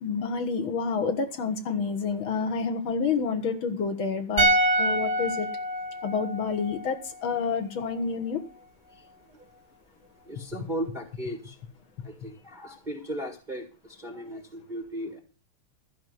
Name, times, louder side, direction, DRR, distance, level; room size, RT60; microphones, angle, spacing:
voice 1, 0.0-4.5 4.8-5.5 6.0-8.4, left 5 dB, 60° left, 6 dB, 1.3 m, -28 dB
sound 1, 4.4-7.6 7.8-8.0, right 1 dB, 25° right, 1.5 m, -27 dB
voice 2, 10.3-11.5 12.2-13.6 14.0-15.2, right 1 dB, 65° right, 1 dB, 0.4 m, -36 dB
14.0 x 5.3 x 9.3 m, 0.36 s
omnidirectional pair, 4.0 m